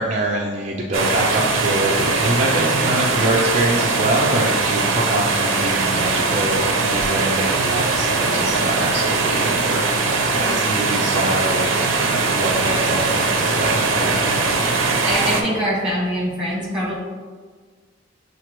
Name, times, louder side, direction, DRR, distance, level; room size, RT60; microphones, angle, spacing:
voice 1, 0.0-14.5 14.8-15.0, right 1 dB, 35° right, -2 dB, 0.4 m, -25 dB
water flow dam close loop, 0.9-15.4, right 3 dB, 85° right, 0.6 m, -20 dB
voice 2, 14.8-17.0, equal, 5° right, -6 dB, 1.3 m, -24 dB
7.1 x 2.5 x 3.0 m, 1.5 s
head